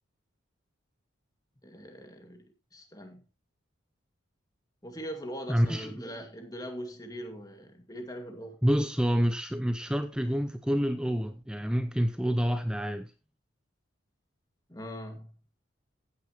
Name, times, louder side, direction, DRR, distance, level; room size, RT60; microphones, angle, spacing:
voice 1, 1.6-2.4 2.7-3.2 4.8-8.6 14.7-15.3, equal, 20° left, 2.2 m, -41 dB
voice 2, 5.5-6.1 8.6-13.1, equal, 5° right, 0.6 m, -28 dB
15.5 x 9.8 x 3.1 m
head